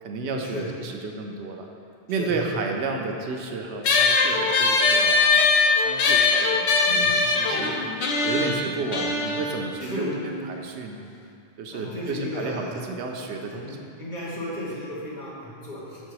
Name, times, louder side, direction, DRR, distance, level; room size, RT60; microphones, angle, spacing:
voice 1, 0.0-1.7 2.1-5.4 5.8-7.7 8.2-11.0 11.6-13.8, right 3 dB, 85° right, 2 dB, 1.0 m, -32 dB
sound 1, 3.8-10.6, left 4 dB, 85° left, 1.0 m, -22 dB
voice 2, 11.7-12.8 13.6-13.7 14.0-16.0, left 1 dB, 35° left, -7 dB, 1.5 m, -34 dB
6.7 x 4.4 x 4.8 m, 2.4 s
omnidirectional pair, 1.1 m